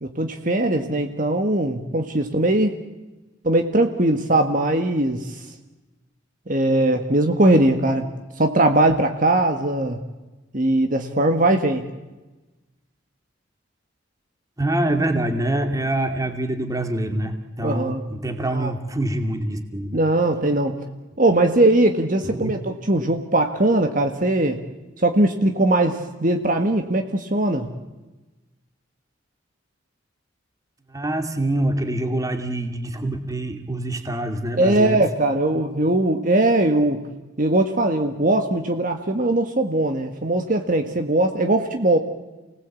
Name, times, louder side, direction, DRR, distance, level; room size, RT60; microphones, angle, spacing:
voice 1, 0.0-2.8 3.4-5.4 6.5-8.1 8.4-10.0 10.5-11.8 17.6-18.0 18.5-18.7 19.9-20.8 21.2-24.6 25.0-27.7 34.6-37.0 37.4-42.0, right 1 dB, 45° right, 5 dB, 1.8 m, -20 dB
voice 2, 14.6-20.0 22.2-22.5 30.9-35.0, right 1 dB, 20° right, 6 dB, 2.4 m, -25 dB
29.5 x 19.5 x 8.5 m, 1.1 s
head